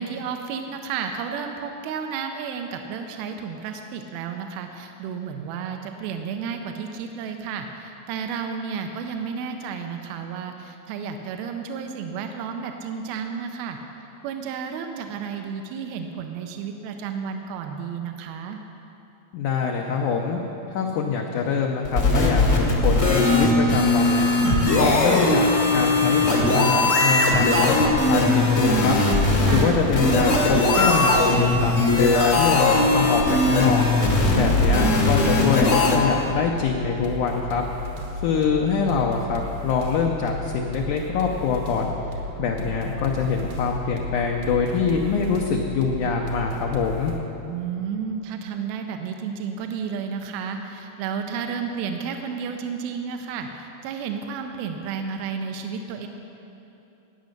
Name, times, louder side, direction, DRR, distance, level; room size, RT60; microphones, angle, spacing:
voice 1, 0.0-13.8 14.2-18.6 29.4-29.9 34.3-35.0 47.5-56.1, right 6 dB, 80° right, 5 dB, 2.6 m, -32 dB
voice 2, 19.3-20.4 20.7-24.3 24.7-29.0 29.5-33.9 34.3-37.6 38.2-41.9 42.4-47.1, left 6 dB, 75° left, 1 dB, 1.8 m, -24 dB
sound 1, 21.8-36.0, left 2 dB, 50° left, 0.9 m, -19 dB
sound 2, 29.6-47.2, left 1 dB, 60° right, 1.9 m, -34 dB
14.5 x 9.4 x 6.6 m, 2.9 s
omnidirectional pair, 4.4 m